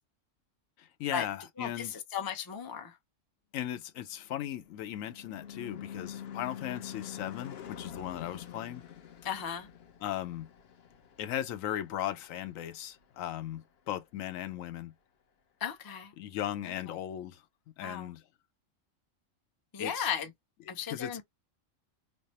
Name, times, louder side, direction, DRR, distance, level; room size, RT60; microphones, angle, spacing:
voice 1, 0.8-2.0 3.5-8.8 10.0-10.5 11.2-14.9 16.2-17.4 17.8-18.2 19.8-20.1 20.7-21.2, left 11 dB, 85° left, 1.0 m, -37 dB
voice 2, 1.6-2.9 9.2-9.7 15.6-16.1 17.8-18.1 19.7-20.3 20.7-21.2, left 7 dB, 30° left, 0.4 m, -35 dB
Car passing by / Truck / Engine, 4.1-12.8, left 9 dB, 60° left, 0.9 m, -46 dB
3.3 x 2.0 x 4.0 m
omnidirectional pair, 1.3 m